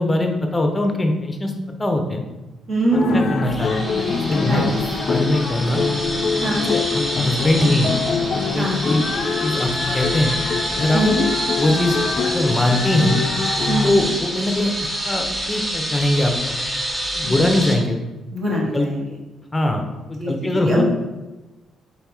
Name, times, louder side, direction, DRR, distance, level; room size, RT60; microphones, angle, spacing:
voice 1, 0.0-1.5 1.8-2.2 3.1-3.9 4.3-4.7 5.0-5.8 6.4-6.5 6.9-8.0 8.5-9.0 9.4-10.3 10.8-11.0 11.6-12.0 12.3-13.2 13.8-14.7 15.0-16.5 17.1-18.0 18.7-18.9 19.5-20.8, left 1 dB, 15° left, 4 dB, 0.6 m, -21 dB
voice 2, 2.7-3.2 4.4-4.6 6.4-6.7 8.6-9.0 10.9-11.2 13.7-14.1 17.2-17.8 18.3-19.2 20.2-20.8, equal, 45° right, -3 dB, 1.3 m, -23 dB
sound 1, 2.9-13.9, left 4 dB, 55° left, 0.4 m, -24 dB
sound 2, 3.4-17.8, equal, 5° right, 1.0 m, -27 dB
4.0 x 2.8 x 3.6 m, 1.1 s
cardioid pair, 90°, 0 cm